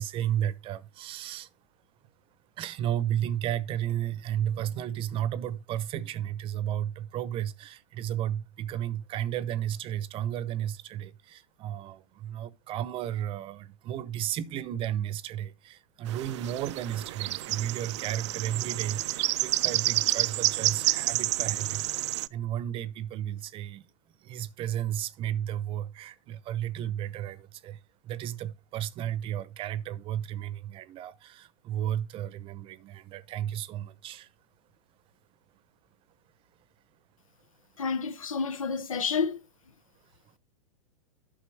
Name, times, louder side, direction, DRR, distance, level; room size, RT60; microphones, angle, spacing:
voice 1, 0.0-1.5 2.6-23.9 24.2-34.3, right 11 dB, 30° right, 0.7 m, -33 dB
sound 1, 16.1-22.3, right 16 dB, 60° right, 0.4 m, -29 dB
voice 2, 37.8-39.4, left 5 dB, 85° left, 1.0 m, -29 dB
8.5 x 5.8 x 4.6 m
hypercardioid pair, 115°, 17 cm